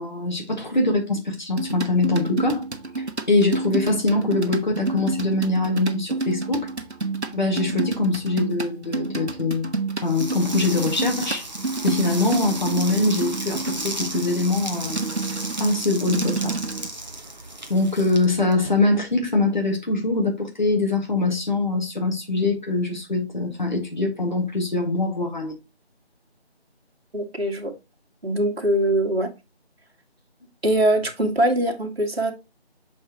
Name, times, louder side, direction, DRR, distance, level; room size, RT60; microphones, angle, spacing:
voice 1, 0.0-2.6 3.3-6.7 7.3-9.7 10.0-11.5 11.8-15.0 15.6-16.6 17.7-25.6, left 2 dB, 45° left, 1.9 m, -23 dB
sound 1, 1.6-16.9, right 3 dB, 85° right, 1.2 m, -30 dB
sound 2, 10.0-19.0, right 1 dB, 40° right, 1.1 m, -35 dB
voice 2, 27.1-27.7 28.2-29.3 30.6-32.3, right 1 dB, 65° right, 2.0 m, -22 dB
6.2 x 5.5 x 2.9 m
figure-of-eight pair, 170°, 33 cm